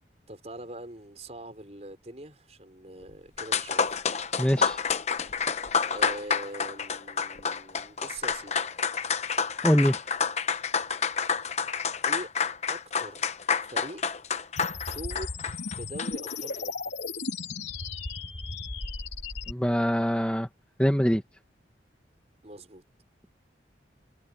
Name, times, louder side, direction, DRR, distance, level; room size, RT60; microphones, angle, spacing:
voice 1, 0.3-3.9 5.9-8.7 12.1-12.3 12.7-13.2 13.7-14.0 14.9-15.4 15.7-16.9 22.4-22.8, right 1 dB, 35° right, 5.9 m, -42 dB
sound 1, 3.1-3.2 3.4-16.4, left 6 dB, 35° left, 0.9 m, -29 dB
voice 2, 4.4-4.8 9.6-10.0 19.5-20.5 20.8-21.2, equal, 5° left, 1.7 m, -23 dB
sound 2, 14.6-19.5, left 3 dB, 75° left, 3.8 m, -35 dB
head